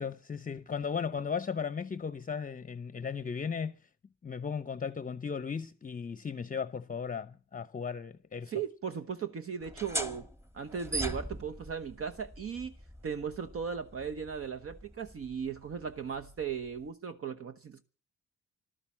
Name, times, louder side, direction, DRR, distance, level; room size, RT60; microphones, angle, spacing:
voice 1, 0.0-3.7 4.2-8.5, left 6 dB, 25° left, 0.8 m, -36 dB
voice 2, 8.5-10.3 10.5-12.7 13.0-17.8, right 7 dB, 50° right, 1.2 m, -37 dB
sound 1, 9.6-16.9, right 1 dB, 10° right, 1.7 m, -42 dB
15.0 x 12.5 x 7.3 m
cardioid pair, 90°, 30 cm